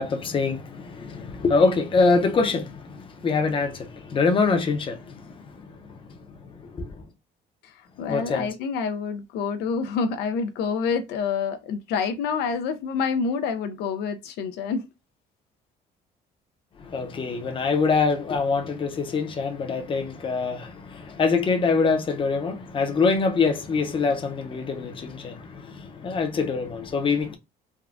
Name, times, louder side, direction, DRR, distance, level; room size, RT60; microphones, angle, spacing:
voice 1, 0.0-6.2 6.4-7.0 8.0-8.5 16.8-27.4, left 4 dB, 30° left, 0.6 m, -25 dB
voice 2, 7.6-14.8, left 5 dB, 80° left, 0.4 m, -27 dB
3.5 x 2.2 x 2.4 m
cardioid pair, 110°, 17 cm